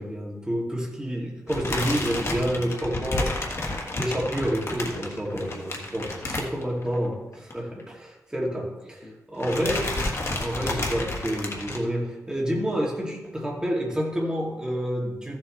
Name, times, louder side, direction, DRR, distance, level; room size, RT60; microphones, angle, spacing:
voice 1, 0.0-3.4 3.9-9.9 10.4-15.4, equal, 15° right, -3 dB, 2.6 m, -29 dB
sound 1, 1.5-7.1 7.3-7.5 7.8-7.9 8.8-9.1 9.4-11.8, left 2 dB, 50° left, 1.6 m, -31 dB
14.5 x 7.6 x 3.3 m, 1.1 s
wide cardioid pair, 110°, 6 cm